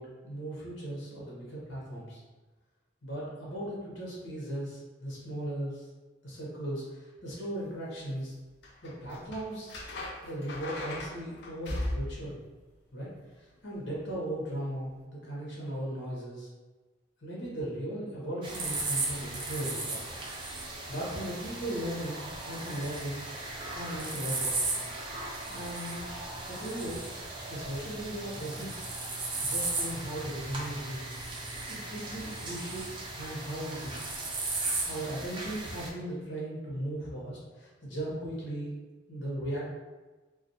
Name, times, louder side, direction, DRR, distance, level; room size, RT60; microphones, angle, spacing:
voice 1, 0.0-2.2 3.0-5.9 6.2-8.3 8.8-9.8 10.2-12.4 12.9-13.1 13.4-16.5 17.2-20.0 20.9-23.2 23.7-24.5 25.5-26.1 26.5-27.0 27.5-28.9 29.4-31.0 31.7-34.0 34.8-38.7 39.1-39.7, right 1 dB, 85° left, -6 dB, 0.9 m, -37 dB
sound 1, 8.6-12.3 14.5-14.7, left 1 dB, 60° left, 0.4 m, -37 dB
sound 2, 18.4-35.9, right 2 dB, 25° right, 0.4 m, -36 dB
2.4 x 2.3 x 2.6 m, 1.2 s
head